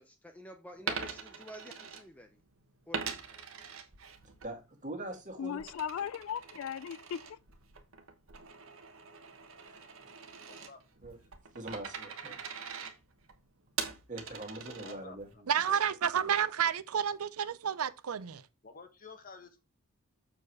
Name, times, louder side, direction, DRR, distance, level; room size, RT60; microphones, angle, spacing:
voice 1, 0.0-2.4 2.9-3.4, equal, 5° left, 0.5 m, -50 dB
Coin (dropping), 0.8-2.5 2.9-4.5 4.9-15.3, right 6 dB, 65° right, 1.2 m, -43 dB
voice 2, 4.4-5.6 9.6-9.8 11.0-11.2 11.5-12.4 14.1-15.8, right 1 dB, 35° right, 1.9 m, -43 dB
voice 3, 5.4-7.4, left 8 dB, 70° left, 0.3 m, -37 dB
voice 4, 10.5-10.8 11.2-11.3 12.2-12.4 14.6-15.4 18.6-19.6, left 4 dB, 40° left, 1.3 m, -51 dB
voice 5, 15.5-18.4, right 8 dB, 85° right, 0.5 m, -30 dB
7.0 x 4.7 x 4.6 m
head